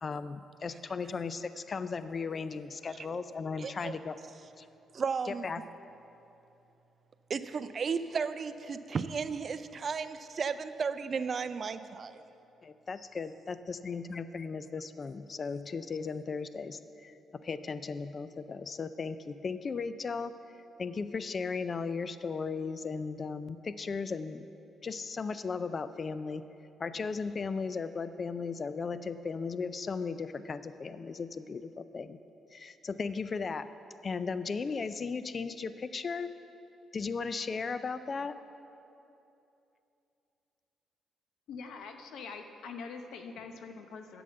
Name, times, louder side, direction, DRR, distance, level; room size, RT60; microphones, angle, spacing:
voice 1, 0.0-4.2 4.6-4.7 5.3-5.6 12.6-17.1 17.4-20.3 20.8-24.5 24.8-26.4 26.8-32.2 32.5-33.7 34.0-36.3 36.9-38.4, left 5 dB, 40° left, 13 dB, 0.4 m, -36 dB
voice 2, 3.6-3.9 4.9-5.5 7.3-12.2, right 5 dB, 45° right, 12 dB, 0.4 m, -34 dB
voice 3, 41.5-44.2, left 5 dB, 80° left, 6 dB, 0.8 m, -44 dB
8.5 x 6.9 x 7.8 m, 2.9 s
cardioid pair, 90°, 0 cm